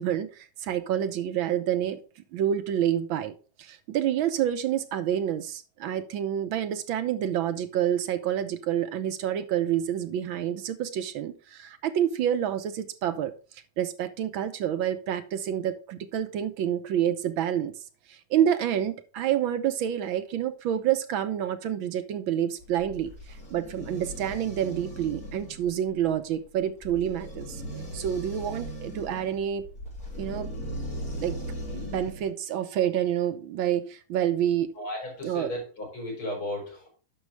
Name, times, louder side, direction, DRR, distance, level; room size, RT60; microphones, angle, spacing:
voice 1, 0.0-2.0 2.3-3.3 3.6-13.3 13.8-17.7 18.1-23.1 23.5-27.6 27.9-29.6 30.2-30.7 31.2-31.4 31.7-34.7 35.2-35.5, right 10 dB, 70° right, 1.5 m, -28 dB
sound 1, 22.6-32.3, equal, 40° left, 5.4 m, -38 dB
voice 2, 34.8-36.9, left 1 dB, 80° left, 5.1 m, -35 dB
9.5 x 6.4 x 3.4 m
omnidirectional pair, 2.3 m